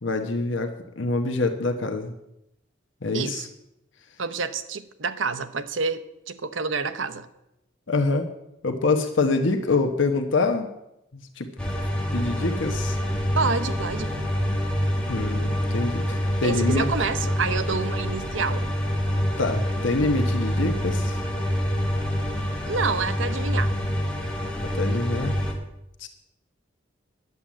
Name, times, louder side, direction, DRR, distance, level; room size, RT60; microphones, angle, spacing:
voice 1, 0.0-2.1 3.0-3.5 7.9-8.3 8.6-10.7 11.1-11.5 12.1-13.0 15.1-16.9 19.4-21.2 24.7-25.3 26.0-26.1, left 3 dB, 75° left, 5 dB, 1.1 m, -25 dB
voice 2, 3.1-3.5 4.2-7.3 13.4-14.1 16.4-18.6 22.7-23.7, right 4 dB, 85° right, 11 dB, 0.9 m, -28 dB
sound 1, 11.6-25.5, equal, 5° left, 2.0 m, -26 dB
11.0 x 8.8 x 7.4 m, 0.85 s
head